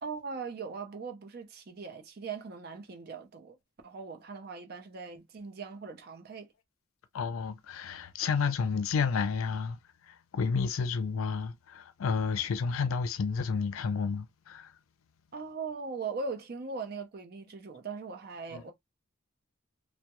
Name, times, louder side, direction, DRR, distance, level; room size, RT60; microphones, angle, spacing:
voice 1, 0.0-3.6 3.8-6.5 15.3-18.7, right 4 dB, 50° right, 0.5 m, -40 dB
voice 2, 7.1-9.8 10.1-14.7 18.5-18.6, left 5 dB, 85° left, 0.4 m, -31 dB
2.2 x 2.0 x 2.9 m
head